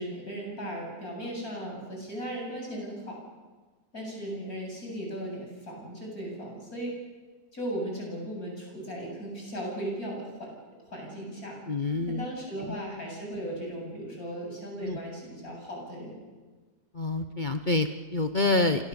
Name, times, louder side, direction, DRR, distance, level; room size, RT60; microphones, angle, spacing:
voice 1, 0.0-3.2 3.9-7.0 7.5-10.5 10.9-11.5 11.8-16.2, right 1 dB, 55° left, 0 dB, 8.7 m, -37 dB
voice 2, 11.7-12.3 14.8-15.0 16.9-18.9, left 2 dB, 35° left, 7 dB, 0.9 m, -27 dB
29.5 x 25.5 x 7.1 m, 1.3 s
omnidirectional pair, 1.8 m